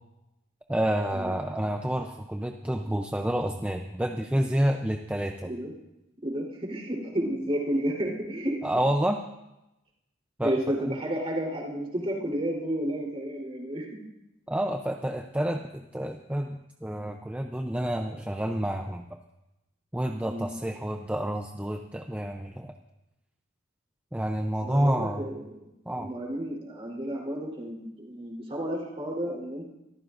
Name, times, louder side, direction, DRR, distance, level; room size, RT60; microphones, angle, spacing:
voice 1, 0.7-5.5 8.6-9.2 10.4-10.5 14.5-19.0 19.9-22.7 24.1-25.3 25.9-26.1, right 1 dB, 5° right, 4 dB, 0.6 m, -29 dB
voice 2, 6.2-8.6 10.4-13.9 20.3-20.5 24.6-25.5 25.9-29.7, right 1 dB, 30° right, -2 dB, 3.7 m, -31 dB
25.0 x 14.5 x 2.6 m, 0.93 s
head